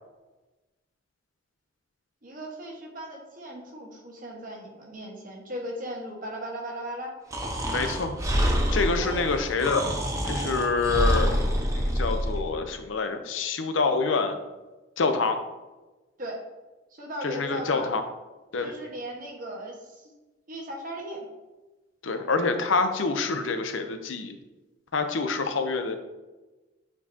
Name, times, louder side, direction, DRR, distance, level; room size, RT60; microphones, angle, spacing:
voice 1, 2.2-7.1 7.7-8.6 9.0-9.2 16.2-16.4 16.9-17.9 18.6-20.1 20.5-21.3, equal, 45° right, 0 dB, 1.2 m, -38 dB
Breathing, 7.3-12.4, equal, 15° right, 0.7 m, -26 dB
voice 2, 7.7-8.1 8.7-9.8 10.3-11.4 11.7-14.4 15.0-15.4 17.2-18.0 18.5-18.7 22.0-24.3 24.9-26.0, left 4 dB, 80° left, 8 dB, 0.6 m, -26 dB
8.3 x 4.6 x 2.7 m, 1.2 s
head